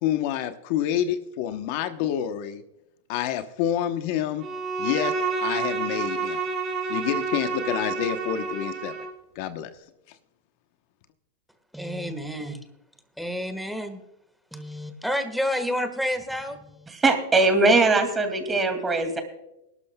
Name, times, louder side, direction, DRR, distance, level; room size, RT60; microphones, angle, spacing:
voice 1, 0.0-2.6 3.1-4.5 4.8-5.1 5.4-6.4 6.9-8.9 9.3-9.7, left 10 dB, 55° left, 9 dB, 0.9 m, -28 dB
Bowed string instrument, 4.4-9.2, right 4 dB, 35° right, 3.0 m, -29 dB
voice 2, 11.7-12.7 13.2-14.0 14.5-16.9, equal, ahead, 8 dB, 1.5 m, -30 dB
voice 3, 17.0-19.2, right 3 dB, 15° right, 6 dB, 2.3 m, -20 dB
20.5 x 12.0 x 2.3 m, 0.87 s
hypercardioid pair, 125°, 0 cm